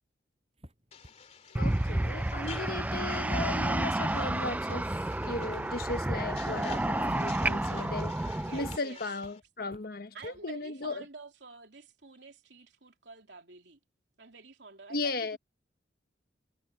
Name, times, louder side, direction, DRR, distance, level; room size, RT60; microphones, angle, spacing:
sound 1, 0.6-7.2 7.6-7.7 8.1-8.2 8.7-8.8 9.2-9.8 10.2-10.4, equal, 35° right, 7.2 m, -55 dB
sound 2, 0.9-9.4, left 6 dB, 35° left, 2.7 m, -51 dB
sound 3, 1.5-8.8, right 1 dB, 10° right, 0.3 m, -30 dB
voice 1, 1.6-4.9 5.2-11.0 14.9-15.4, left 3 dB, 55° left, 1.2 m, -36 dB
voice 2, 8.4-9.0 10.1-13.8 14.2-15.4, right 3 dB, 75° right, 3.2 m, -49 dB
head